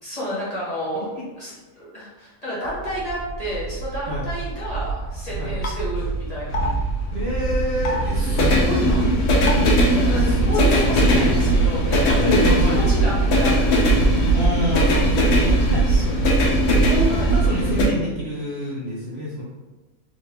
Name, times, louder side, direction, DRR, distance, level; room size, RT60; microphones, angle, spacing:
voice 1, 0.0-6.6 9.9-13.8 15.4-16.7 17.1-17.3, equal, 30° left, -9 dB, 1.0 m, -32 dB
sound 1, 2.7-17.9, right 1 dB, 85° left, 1.2 m, -19 dB
sound 2, 5.6-5.7 6.5-6.7 7.8-8.0 9.5-9.7 10.7-10.8 12.1-12.2, left 3 dB, 60° left, 0.6 m, -26 dB
voice 2, 7.1-9.1 9.5-9.7 10.2-11.0 12.1-12.9 14.3-15.8 16.2-16.3 16.8-19.4, equal, 55° right, -5 dB, 0.8 m, -27 dB
3.7 x 2.6 x 3.3 m, 1.2 s
omnidirectional pair, 1.5 m